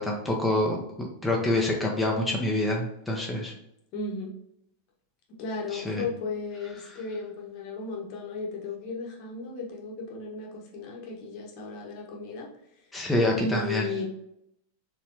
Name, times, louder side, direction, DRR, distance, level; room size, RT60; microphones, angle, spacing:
voice 1, 0.0-3.5 5.7-6.0 12.9-13.8, left 1 dB, 5° left, -2 dB, 0.8 m, -26 dB
voice 2, 3.9-4.4 5.4-12.5 13.3-14.0, left 3 dB, 45° left, -2 dB, 1.0 m, -35 dB
4.2 x 3.4 x 2.8 m, 0.77 s
figure-of-eight pair, 90°, 0 cm